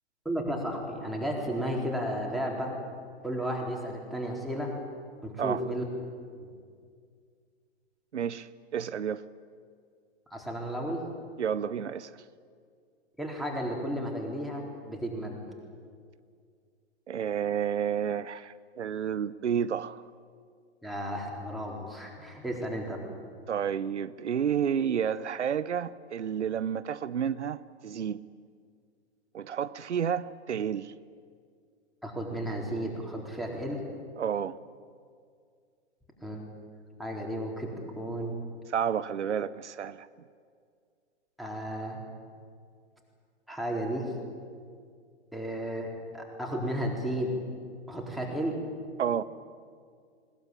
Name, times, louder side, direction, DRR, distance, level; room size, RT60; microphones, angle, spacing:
voice 1, 0.2-2.7 3.2-4.7 5.2-5.8 6.4-6.5 10.3-11.0 13.2-15.4 20.8-23.0 32.0-33.8 36.2-36.5 37.0-38.4 41.4-42.0 43.5-44.1 45.3-47.4 47.9-48.6, equal, ahead, -2 dB, 4.0 m, -33 dB
voice 2, 8.1-9.2 11.4-12.2 17.1-20.0 23.5-28.2 29.3-30.9 34.2-34.6 38.7-40.1 49.0-49.2, right 8 dB, 90° right, 16 dB, 0.8 m, -30 dB
20.5 x 20.0 x 8.9 m, 2.1 s
hypercardioid pair, 125°, 34 cm